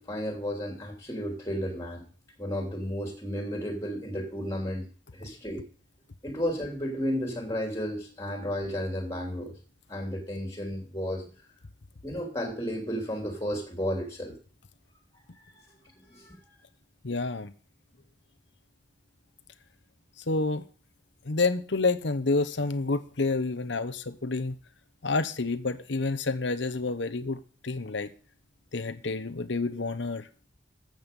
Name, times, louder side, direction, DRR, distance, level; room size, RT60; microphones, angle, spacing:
voice 1, 0.0-2.1 2.4-4.9 5.1-5.6 6.2-9.5 9.9-11.3 12.0-14.3 15.3-15.6 16.1-16.4, equal, 15° left, 3.2 m, -33 dB
voice 2, 17.0-17.5 20.3-20.6 21.2-24.5 25.0-28.1 28.7-30.3, left 3 dB, 65° left, 0.9 m, -29 dB
13.5 x 7.9 x 5.3 m
head